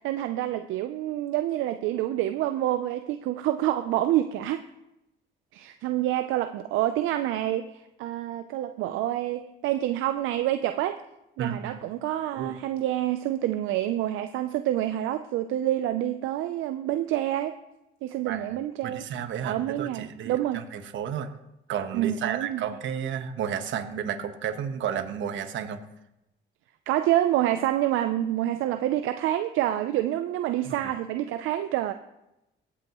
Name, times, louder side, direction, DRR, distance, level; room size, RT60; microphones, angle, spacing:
voice 1, 0.0-4.6 5.5-11.0 11.4-17.6 18.0-19.1 19.4-20.6 21.9-22.6 26.9-31.9, right 13 dB, 85° right, 9 dB, 0.5 m, -27 dB
voice 2, 11.4-11.8 12.3-12.5 18.2-18.6 18.8-21.3 21.7-25.8 30.6-30.9, right 8 dB, 70° right, 8 dB, 1.1 m, -32 dB
17.0 x 8.5 x 3.0 m, 0.91 s
cardioid pair, 75°, 20 cm